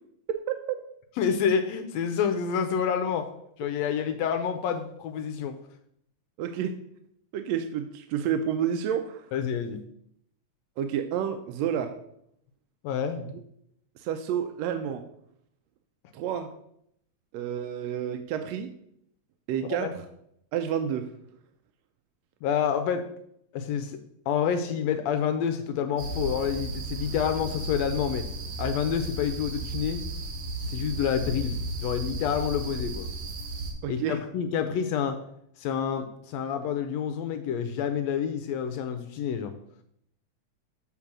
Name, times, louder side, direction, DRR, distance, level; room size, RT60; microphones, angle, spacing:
voice 1, 0.3-0.8 6.4-6.8 7.3-9.3 10.8-11.9 14.0-15.0 16.1-16.5 17.3-18.7 19.5-20.0 20.5-21.1 33.8-34.2, right 9 dB, 80° right, 7 dB, 1.6 m, -30 dB
voice 2, 1.2-3.3 3.6-5.6 9.3-9.8 12.8-13.2 19.8-19.9 22.4-23.1 23.5-24.0 24.3-28.3 28.6-30.0 30.7-33.1 33.9-35.2 35.6-39.5, left 7 dB, 80° left, 8 dB, 1.6 m, -28 dB
sound 1, 26.0-33.7, right 2 dB, 60° right, 2.2 m, -34 dB
7.5 x 3.7 x 5.9 m, 0.73 s
omnidirectional pair, 3.4 m